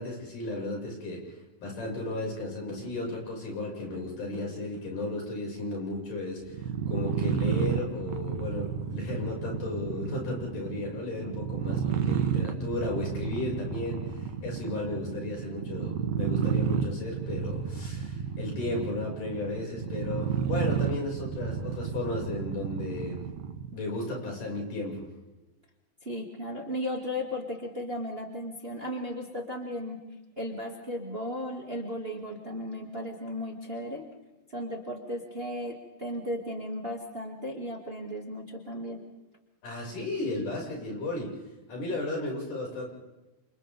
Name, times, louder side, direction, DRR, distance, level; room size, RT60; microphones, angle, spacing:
voice 1, 0.0-6.6 6.9-23.2 23.7-25.1 39.6-41.4 41.7-42.9, left 2 dB, 75° left, -1 dB, 7.8 m, -34 dB
sound 1, 6.5-23.8, right 8 dB, 60° right, 2.3 m, -31 dB
voice 2, 26.0-30.0 30.4-34.0 34.5-39.0, left 1 dB, 20° right, 1 dB, 2.1 m, -35 dB
29.5 x 28.0 x 3.6 m, 1.1 s
omnidirectional pair, 3.8 m